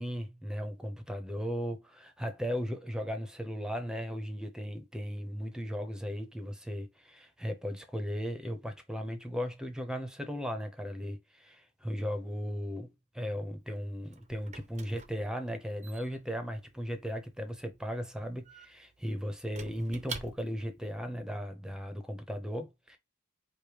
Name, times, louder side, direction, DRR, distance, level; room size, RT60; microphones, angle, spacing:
voice 1, 0.0-23.0, equal, 5° right, 0.8 m, -37 dB
Squeak / Wood, 13.6-20.8, right 5 dB, 35° right, 0.7 m, -49 dB
5.2 x 2.1 x 4.7 m
head